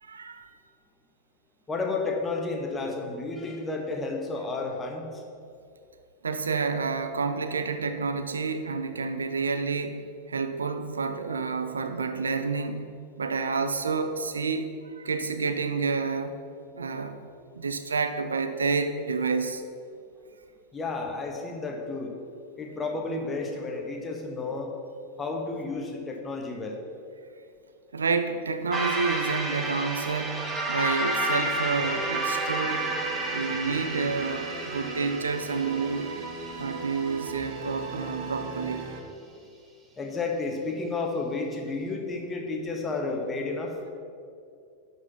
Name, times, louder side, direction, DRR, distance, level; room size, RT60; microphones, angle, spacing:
voice 1, 0.0-0.5 6.2-12.9 13.2-16.4 16.7-17.2 17.5-19.6 27.9-32.9 33.3-36.3 36.6-38.9, right 4 dB, 70° right, 9 dB, 0.6 m, -29 dB
voice 2, 1.7-5.2 20.7-22.1 22.6-24.7 25.2-26.8 40.0-43.7, left 3 dB, 15° left, 1 dB, 1.4 m, -31 dB
sound 1, 28.7-37.2, right 2 dB, 15° right, 1.3 m, -31 dB
sound 2, 31.8-39.0, right 4 dB, 45° right, 1.1 m, -38 dB
11.0 x 4.7 x 6.0 m, 2.4 s
figure-of-eight pair, 90°, 0 cm